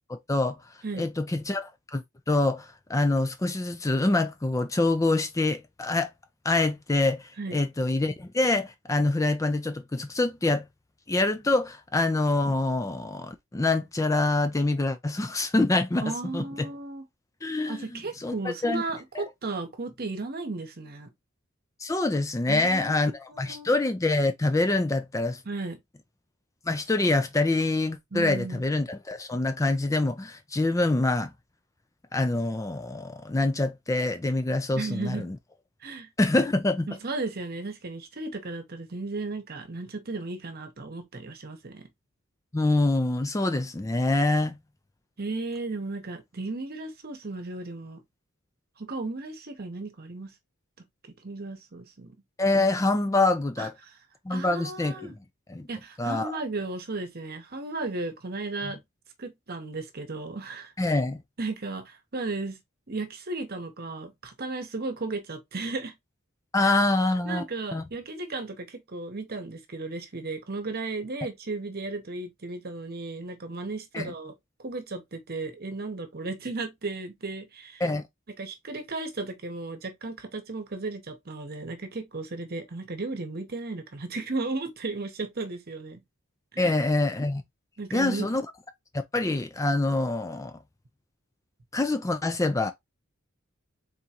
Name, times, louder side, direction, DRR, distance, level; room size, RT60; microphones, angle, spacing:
voice 1, 0.1-0.6 1.0-6.1 6.4-10.7 11.1-16.7 17.4-18.8 21.8-25.4 26.7-31.3 32.1-35.4 36.2-36.9 42.5-44.6 52.4-53.7 54.3-55.1 55.5-55.7 56.0-56.4 58.6-58.7 60.8-61.2 66.5-67.4 67.7-67.8 73.9-74.1 77.8-78.0 86.6-87.4 87.9-88.4 89.1-90.6 91.7-92.7, left 2 dB, 15° left, 0.4 m, -25 dB
voice 2, 16.0-17.0 17.7-21.1 22.5-23.7 25.5-25.8 28.1-28.6 34.8-35.3 35.8-36.1 36.9-41.9 45.2-48.0 48.8-50.3 51.2-52.1 53.6-53.7 54.3-55.2 55.7-58.8 59.2-60.7 61.4-62.6 62.9-65.9 66.6-66.7 67.2-74.3 74.6-77.8 78.4-86.0 86.5-86.7 87.8-88.3, right 3 dB, 45° right, 1.0 m, -35 dB
4.0 x 3.6 x 2.8 m
head